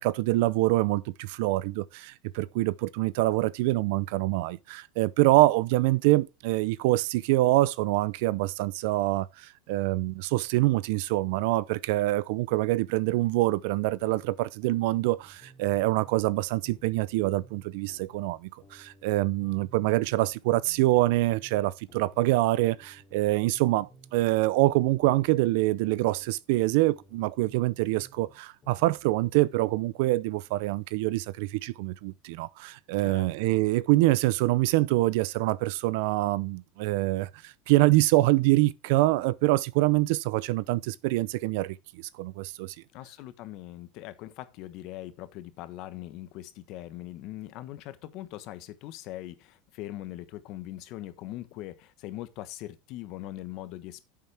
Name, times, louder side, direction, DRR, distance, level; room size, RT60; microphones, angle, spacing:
voice 1, 0.0-42.7, right 18 dB, 70° right, 0.5 m, -25 dB
sound 1, 13.9-16.4 16.6-20.4 20.6-24.4 24.6-28.4 28.6-29.7, equal, 30° left, 3.1 m, -56 dB
voice 2, 33.0-33.6 42.9-54.0, left 14 dB, 55° left, 1.2 m, -41 dB
10.0 x 7.5 x 3.4 m
supercardioid pair, 135°, 0 cm